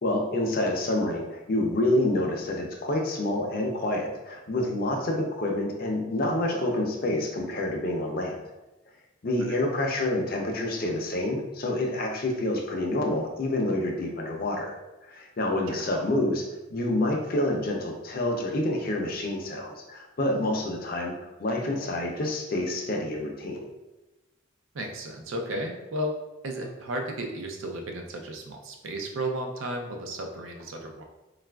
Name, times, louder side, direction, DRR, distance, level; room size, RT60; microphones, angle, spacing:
voice 1, 0.0-8.4 9.2-14.8 15.0-23.7, left 1 dB, 45° left, 1 dB, 0.5 m, -28 dB
voice 2, 24.7-26.1 26.4-31.0, right 1 dB, 85° right, 2 dB, 0.5 m, -34 dB
3.9 x 2.4 x 2.2 m, 1.0 s
head